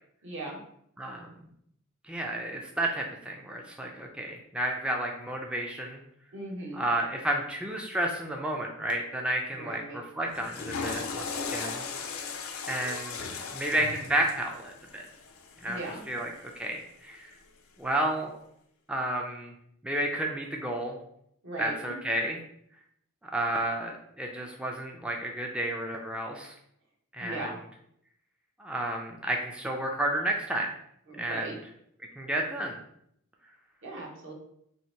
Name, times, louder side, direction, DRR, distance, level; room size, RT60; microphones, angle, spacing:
voice 1, 0.2-0.6 6.3-6.8 9.5-10.0 15.6-16.0 21.4-22.0 27.2-27.6 31.1-31.6 33.8-34.3, right 2 dB, 65° right, 0 dB, 1.0 m, -38 dB
voice 2, 1.0-1.3 2.1-6.0 6.8-11.8 12.7-15.0 15.6-15.8 16.1-17.3 17.8-18.4 18.9-19.5 19.8-21.0 21.6-22.4 23.3-26.5 27.1-27.5 28.6-30.7 31.2-31.5 32.2-32.8, right 1 dB, 5° right, 0 dB, 0.3 m, -31 dB
Water / Toilet flush, 10.3-16.6, left 5 dB, 90° left, 0.6 m, -37 dB
2.9 x 2.8 x 4.3 m, 0.72 s
head